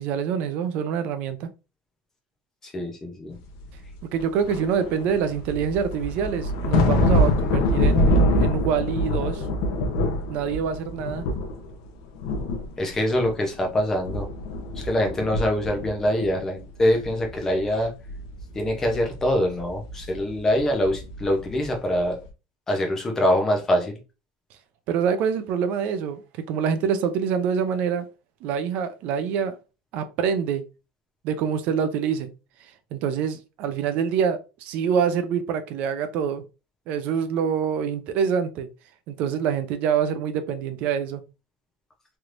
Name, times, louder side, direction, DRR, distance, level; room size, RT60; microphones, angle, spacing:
voice 1, 0.0-1.5 4.0-9.5 10.3-11.2 24.9-28.1 28.4-29.6 29.9-30.7 31.2-32.3 32.9-36.4 36.9-38.7 39.1-41.2, right 7 dB, 45° right, 0.5 m, -26 dB
voice 2, 2.6-3.4 12.8-14.3 14.8-17.9 18.5-22.2 22.7-23.9, left 1 dB, 10° left, 0.7 m, -24 dB
sound 1, 3.7-3.8 4.2-11.9 12.2-13.7 14.0-16.6 16.9-21.7 22.0-22.2, left 1 dB, 60° left, 0.7 m, -25 dB
3.3 x 3.0 x 2.5 m
cardioid pair, 180°, 4 cm